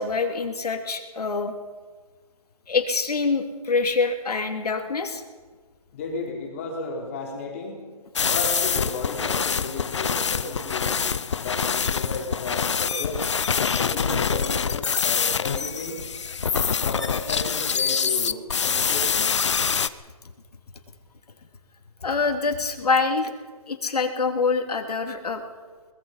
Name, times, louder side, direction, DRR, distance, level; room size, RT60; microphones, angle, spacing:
voice 1, 0.0-1.5 2.7-5.2 22.0-23.3 23.7-25.4, left 4 dB, 85° left, 4 dB, 3.1 m, -25 dB
voice 2, 5.9-7.8 8.2-11.0 11.4-13.2 13.6-16.0 16.8-19.4, left 3 dB, 20° left, 0 dB, 3.4 m, -33 dB
sound 1, 8.1-19.9, left 6 dB, 50° left, 0.8 m, -25 dB
23.0 x 20.0 x 5.7 m, 1.5 s
hypercardioid pair, 175°, 19 cm